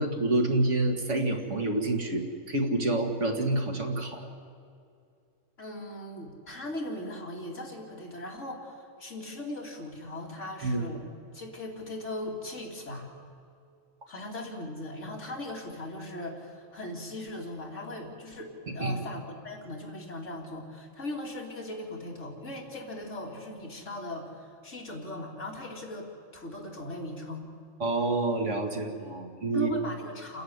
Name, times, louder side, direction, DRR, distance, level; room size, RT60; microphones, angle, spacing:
voice 1, 0.0-4.3 10.6-10.9 18.7-18.9 27.8-29.7, right 2 dB, 70° right, 3 dB, 2.3 m, -28 dB
voice 2, 5.6-11.0 11.3-13.1 14.1-27.5 29.5-30.4, left 1 dB, 70° left, -1 dB, 3.3 m, -39 dB
29.0 x 10.5 x 9.6 m, 2.4 s
omnidirectional pair, 1.3 m